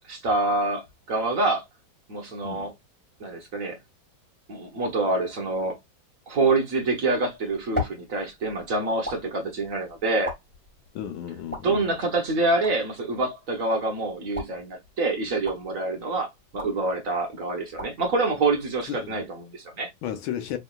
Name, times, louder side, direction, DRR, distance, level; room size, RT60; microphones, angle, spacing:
voice 1, 0.1-1.6 2.1-2.7 3.2-3.8 4.5-5.8 6.3-10.3 11.6-19.9, right 3 dB, 50° right, 1.2 m, -26 dB
sound 1, 7.1-19.3, left 1 dB, 5° left, 1.5 m, -40 dB
voice 2, 10.9-11.9 18.9-19.2 20.0-20.6, left 10 dB, 90° left, 1.7 m, -33 dB
4.8 x 3.4 x 2.3 m
omnidirectional pair, 2.1 m